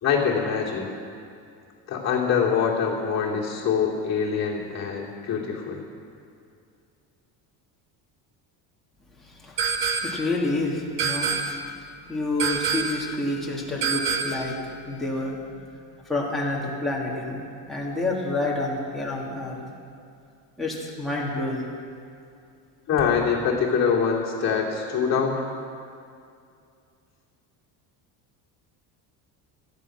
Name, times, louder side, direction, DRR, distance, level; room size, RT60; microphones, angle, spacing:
voice 1, 0.0-0.9 1.9-5.8 22.9-25.4, left 6 dB, 35° left, -3 dB, 2.7 m, -24 dB
voice 2, 9.2-9.7 10.0-11.4 12.1-15.6 16.1-17.4 17.7-19.6 20.6-21.7, left 2 dB, ahead, -6 dB, 2.5 m, -28 dB
sound 1, 9.6-10.3 11.0-11.7 12.4-13.1 13.8-14.5, right 6 dB, 65° right, 1.5 m, -26 dB
17.0 x 13.0 x 6.1 m, 2.4 s
cardioid pair, 165°, 44 cm